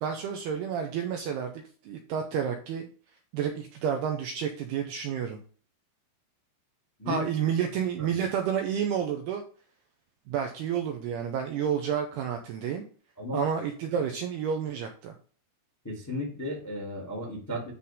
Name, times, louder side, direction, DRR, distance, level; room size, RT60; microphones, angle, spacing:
voice 1, 0.0-2.9 3.3-5.4 7.1-9.4 10.3-12.8 13.3-15.1, right 8 dB, 90° right, 3 dB, 2.3 m, -30 dB
voice 2, 15.8-17.7, equal, 5° left, -1 dB, 1.3 m, -34 dB
10.5 x 4.2 x 3.7 m, 0.42 s
omnidirectional pair, 5.7 m